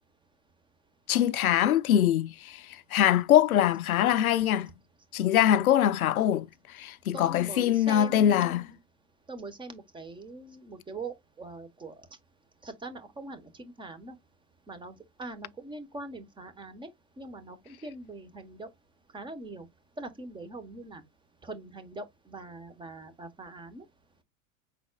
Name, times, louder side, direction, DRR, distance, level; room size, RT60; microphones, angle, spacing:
voice 1, 1.1-2.6 2.9-4.7 5.1-6.5 6.7-8.6, left 11 dB, 90° left, 0.6 m, -23 dB
voice 2, 7.1-8.8 9.3-11.9 12.6-14.1 14.7-16.9 17.2-18.7 19.1-19.7 20.0-21.0 21.4-23.8, right 2 dB, 10° right, 1.1 m, -42 dB
5.7 x 4.1 x 2.2 m
hypercardioid pair, 110°, 41 cm